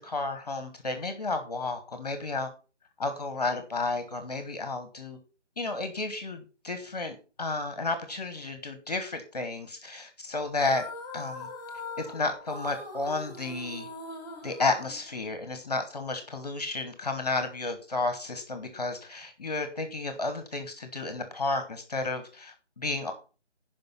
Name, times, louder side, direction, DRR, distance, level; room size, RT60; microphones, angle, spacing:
voice 1, 0.0-2.5 3.0-5.2 5.6-10.8 11.1-11.5 12.0-13.9 14.4-23.1, left 3 dB, 35° left, 8 dB, 1.3 m, -32 dB
sound 1, 10.6-15.4, left 2 dB, 15° left, 1.8 m, -42 dB
10.5 x 5.3 x 5.5 m, 0.35 s
figure-of-eight pair, 160°, 36 cm